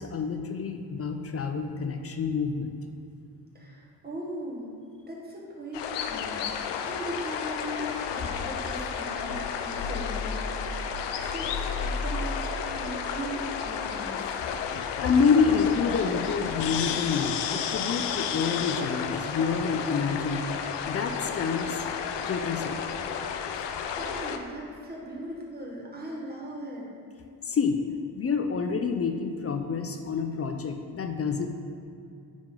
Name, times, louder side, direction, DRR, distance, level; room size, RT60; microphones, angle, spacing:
voice 1, 0.0-2.7 15.0-20.5 20.8-21.9 22.3-22.9 23.6-23.7 27.4-27.8 28.1-31.5, left 5 dB, 35° left, 5 dB, 0.5 m, -27 dB
voice 2, 3.5-4.7 5.1-10.9 11.2-11.5 11.7-12.5 12.7-14.4 24.0-26.8, right 1 dB, 25° right, -4 dB, 1.6 m, -39 dB
sound 1, 5.7-24.4, left 6 dB, 90° left, 0.6 m, -32 dB
9.7 x 3.6 x 3.8 m, 2.5 s
cardioid pair, 85°, 41 cm